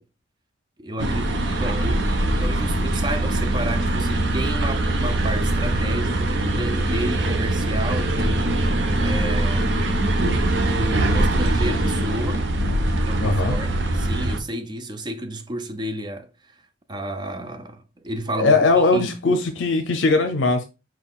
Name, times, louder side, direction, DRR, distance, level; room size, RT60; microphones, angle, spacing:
voice 1, 0.8-2.1 2.4-8.5 8.9-9.7 10.7-12.5 13.0-16.6 16.9-19.4, right 1 dB, 25° right, 0.4 m, -31 dB
sound 1, 1.0-14.4, right 1 dB, 70° right, 0.7 m, -22 dB
voice 2, 13.2-13.6 18.4-20.6, left 3 dB, 75° left, 0.6 m, -19 dB
4.7 x 3.8 x 2.3 m
head